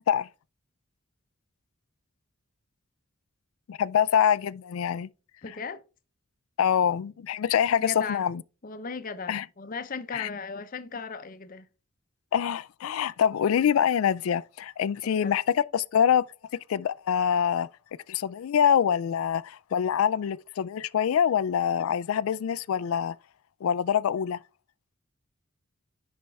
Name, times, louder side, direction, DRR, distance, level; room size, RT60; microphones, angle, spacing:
voice 1, 3.7-5.1 6.6-8.4 9.3-9.4 10.1-10.3 12.3-16.3 16.7-17.7 18.1-23.2 23.6-24.4, left 8 dB, 85° left, 0.3 m, -25 dB
voice 2, 5.4-5.8 7.8-8.3 8.6-11.7 15.0-15.4, left 5 dB, 40° left, 0.7 m, -37 dB
10.5 x 4.4 x 3.4 m
head